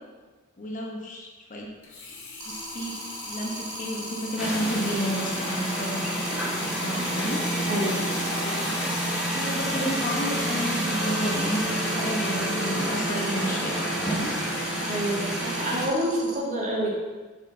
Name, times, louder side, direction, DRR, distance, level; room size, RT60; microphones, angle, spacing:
voice 1, 0.6-1.7 2.5-7.4 9.2-14.3, equal, 35° left, -1 dB, 1.0 m, -32 dB
Sink (filling or washing), 1.8-10.1 10.6-10.7, left 3 dB, 60° left, 1.4 m, -42 dB
sound 1, 2.4-16.3, right 2 dB, 75° right, 1.6 m, -39 dB
sound 2, 4.4-15.9, right 1 dB, 5° right, 1.5 m, -28 dB
voice 2, 7.7-8.0 14.9-16.9, equal, 35° right, -4 dB, 1.7 m, -27 dB
6.1 x 5.4 x 3.9 m, 1.3 s
head